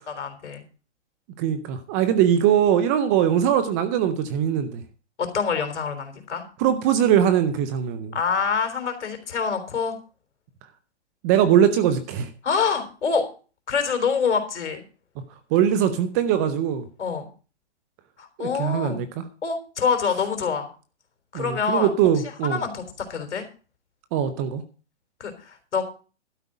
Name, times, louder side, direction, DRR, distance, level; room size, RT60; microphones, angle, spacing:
voice 1, 0.2-0.6 5.2-6.4 8.1-10.0 12.4-13.2 13.7-14.8 17.0-17.3 18.2-19.0 19.4-20.7 21.3-21.9 22.4-23.4 25.2-25.8, left 5 dB, 80° left, 7 dB, 3.6 m, -26 dB
voice 2, 1.4-4.8 6.6-8.1 11.2-12.3 15.5-16.8 18.4-19.2 21.3-22.6 24.1-24.6, right 9 dB, 15° right, 11 dB, 0.5 m, -21 dB
12.0 x 5.1 x 8.8 m, 0.36 s
hypercardioid pair, 155°, 35 cm